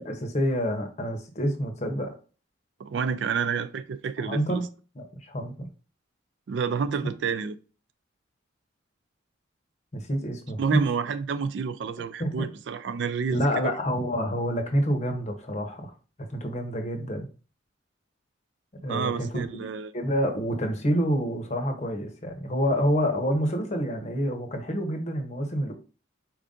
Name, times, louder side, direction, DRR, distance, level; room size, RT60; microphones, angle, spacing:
voice 1, 0.0-2.1 4.2-4.6 5.0-5.7 9.9-10.8 12.2-12.5 13.3-15.9 16.3-17.3 18.8-19.4 19.9-25.7, equal, 35° left, 0.8 m, -27 dB
voice 2, 2.8-4.6 6.5-7.6 10.6-13.7 18.9-19.9, right 6 dB, 65° right, 0.3 m, -29 dB
4.5 x 2.6 x 3.6 m
head